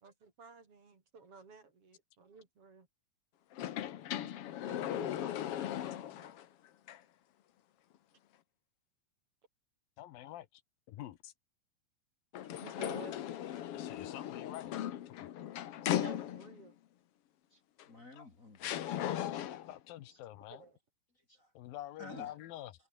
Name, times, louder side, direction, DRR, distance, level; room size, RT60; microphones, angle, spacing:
voice 1, 0.0-2.9 4.2-4.3 4.7-6.3 12.6-13.2 15.9-16.8 20.5-20.8, right 4 dB, 40° right, 4.0 m, -52 dB
sound 1, 3.5-6.4 6.9-7.0 12.3-16.7 17.8-17.9 18.6-19.8, left 11 dB, 65° left, 1.5 m, -38 dB
voice 2, 10.0-10.6 10.9-11.3 13.7-14.7 15.1-15.3 18.2-18.3 18.9-19.3 19.7-20.6 21.5-22.7, left 13 dB, 80° left, 2.9 m, -47 dB
voice 3, 17.5-19.2 20.1-20.2 21.1-21.5 22.0-22.3, left 2 dB, 25° left, 2.2 m, -53 dB
omnidirectional pair, 4.1 m